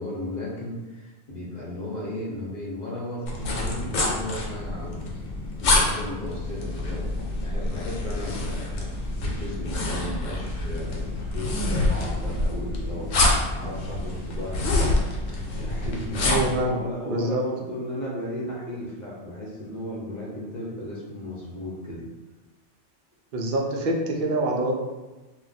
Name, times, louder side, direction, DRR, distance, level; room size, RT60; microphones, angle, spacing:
voice 1, 0.0-5.1 5.6-8.9 9.2-22.1, left 1 dB, 45° left, -5 dB, 0.7 m, -35 dB
sound 1, 3.3-16.6, left 2 dB, 90° left, 0.9 m, -27 dB
sound 2, 6.2-14.9, left 2 dB, 85° right, 0.9 m, -36 dB
voice 2, 16.2-16.8 17.1-17.4 23.3-24.8, right 2 dB, 60° right, 0 dB, 0.6 m, -25 dB
2.3 x 2.1 x 3.9 m, 1.2 s
omnidirectional pair, 1.2 m